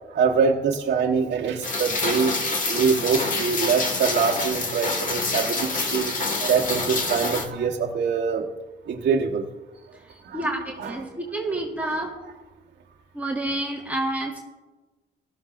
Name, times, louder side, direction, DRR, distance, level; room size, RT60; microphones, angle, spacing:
voice 1, 0.1-2.4 2.7-6.1 6.4-8.4 8.9-9.4 10.2-10.5 10.8-11.0, right 6 dB, 60° right, -3 dB, 1.3 m, -24 dB
Rain, 1.6-7.5, left 3 dB, 40° left, 1.7 m, -27 dB
voice 2, 10.3-12.1 13.1-14.4, right 1 dB, 10° right, -2 dB, 1.7 m, -28 dB
17.5 x 13.0 x 2.6 m, 1.2 s
cardioid pair, 90°, 20 cm